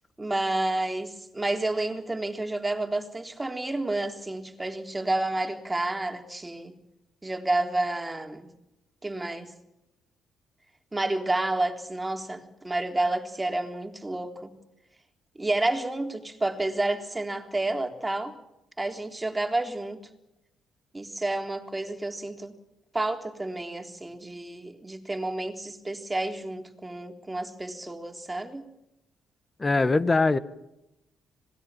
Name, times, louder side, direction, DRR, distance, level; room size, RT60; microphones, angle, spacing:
voice 1, 0.2-6.7 7.2-8.5 9.0-9.5 10.9-14.5 15.4-18.4 18.8-20.0 20.9-22.5 22.9-28.7, right 2 dB, 15° right, 3.6 m, -30 dB
voice 2, 29.6-30.4, left 3 dB, 25° left, 1.6 m, -22 dB
26.0 x 20.0 x 7.5 m
cardioid pair, 90°, 0 cm